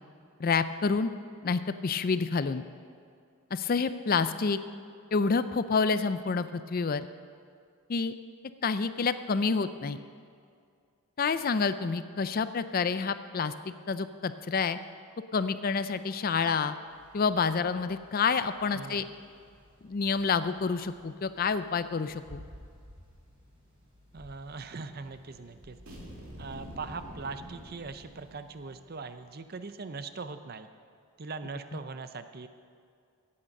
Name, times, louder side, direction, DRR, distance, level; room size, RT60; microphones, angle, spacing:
voice 1, 0.4-1.1 1.4-2.6 3.5-4.6 5.1-7.1 7.9-8.1 8.6-10.0 11.2-14.8 15.3-16.7 17.1-19.0 19.8-22.4, left 5 dB, 40° left, 12 dB, 0.4 m, -28 dB
sound 1, 16.8-29.9, equal, 25° right, 3.6 m, -56 dB
voice 2, 24.1-25.8 26.4-30.7 31.2-32.5, right 4 dB, 45° right, 10 dB, 0.6 m, -41 dB
sound 2, 25.9-28.6, equal, 85° right, 2.5 m, -46 dB
16.5 x 8.7 x 5.4 m, 2.3 s
head